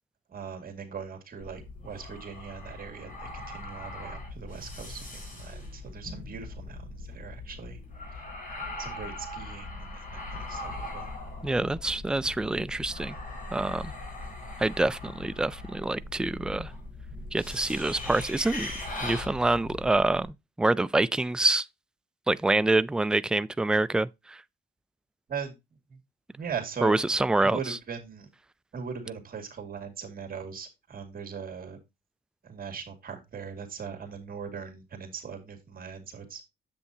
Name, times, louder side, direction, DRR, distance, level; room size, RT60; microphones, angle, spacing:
voice 1, 0.3-7.8 8.8-11.1 14.2-14.4 25.3-25.5 25.9-26.0 26.4-27.0 27.4-28.3 28.7-31.8 32.4-36.4, right 6 dB, 45° right, 2.2 m, -40 dB
sound 1, 1.4-20.3, left 2 dB, 40° left, 4.6 m, -40 dB
voice 2, 11.4-13.2 13.5-13.9 14.6-16.7 17.3-18.7 19.0-21.7 22.3-24.4 26.8-27.8, right 2 dB, 5° right, 0.3 m, -26 dB
7.6 x 7.0 x 2.8 m
cardioid pair, 90°, 20 cm